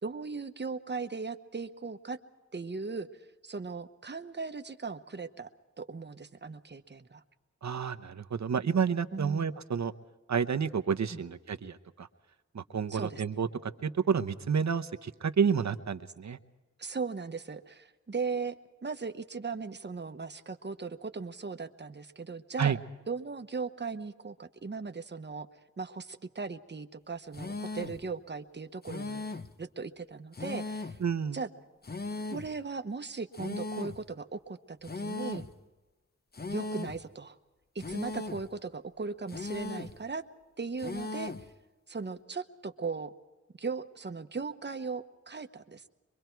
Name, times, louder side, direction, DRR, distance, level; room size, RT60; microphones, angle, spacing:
voice 1, 0.0-2.2 2.5-3.1 3.4-5.5 5.8-7.2 9.1-9.5 11.1-11.2 12.9-13.2 16.8-18.6 18.8-22.8 23.1-25.5 25.8-31.0 31.3-31.5 32.3-35.5 36.5-37.4 37.7-40.2 40.6-41.3 41.9-43.1 43.6-45.9, right 4 dB, 35° right, 8 dB, 1.0 m, -38 dB
voice 2, 7.6-9.9 10.3-12.1 12.5-16.4 22.6-22.8 31.0-31.4, right 6 dB, 70° right, 9 dB, 0.9 m, -30 dB
sound 1, 27.3-28.0 28.8-29.6 30.3-31.1 31.8-32.5 33.3-34.0 34.8-35.5 36.3-37.0 37.8-38.5 39.3-40.0 40.8-41.5, left 2 dB, 35° left, 0.9 m, -38 dB
24.5 x 23.0 x 4.6 m, 1.2 s
wide cardioid pair, 90°, 29 cm